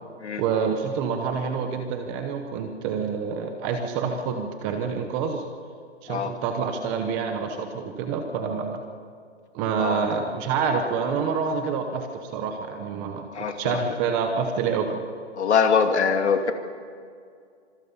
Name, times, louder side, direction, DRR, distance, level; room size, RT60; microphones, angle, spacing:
voice 1, 0.4-5.4 6.0-8.8 9.5-15.0, right 6 dB, 15° right, 6 dB, 0.8 m, -27 dB
voice 2, 13.3-13.8 15.3-16.5, left 6 dB, 70° left, 6 dB, 2.6 m, -23 dB
26.0 x 22.5 x 5.5 m, 2.2 s
hypercardioid pair, 160°, 35 cm